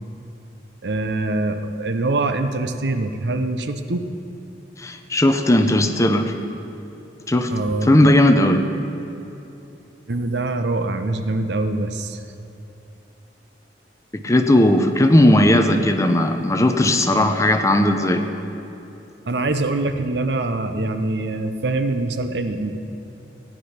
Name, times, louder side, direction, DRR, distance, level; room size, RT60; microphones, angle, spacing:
voice 1, 0.8-4.1 7.5-8.1 10.1-12.2 19.2-22.8, right 2 dB, 70° right, 8 dB, 0.7 m, -24 dB
voice 2, 4.8-6.4 7.3-7.5 7.9-8.6 14.2-18.2, left 1 dB, 15° left, 6 dB, 0.7 m, -16 dB
15.0 x 9.7 x 5.7 m, 2.9 s
head